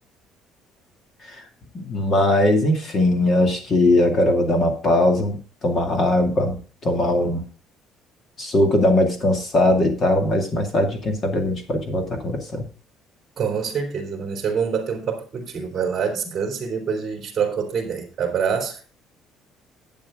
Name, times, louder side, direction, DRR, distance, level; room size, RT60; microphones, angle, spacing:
voice 1, 1.7-5.4 5.6-6.5 6.8-7.4 8.4-12.6 16.3-16.4, left 1 dB, 30° left, 2.4 m, -20 dB
voice 2, 13.4-18.8, right 6 dB, 25° right, 3.3 m, -26 dB
11.5 x 8.6 x 3.8 m
cardioid pair, 175°, 0 cm